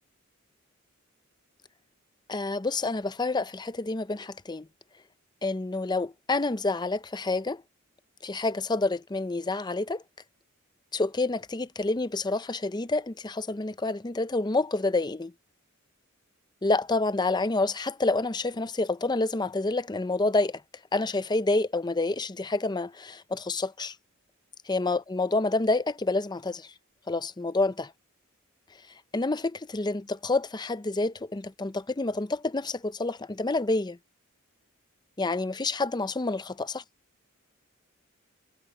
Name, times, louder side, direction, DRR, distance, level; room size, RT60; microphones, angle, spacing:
voice 1, 2.3-4.7 5.4-7.6 8.2-10.0 10.9-15.3 16.6-20.6 20.9-23.9 24.7-26.7 27.1-27.9 29.1-34.0 35.2-36.8, left 2 dB, 20° left, 0.6 m, -28 dB
head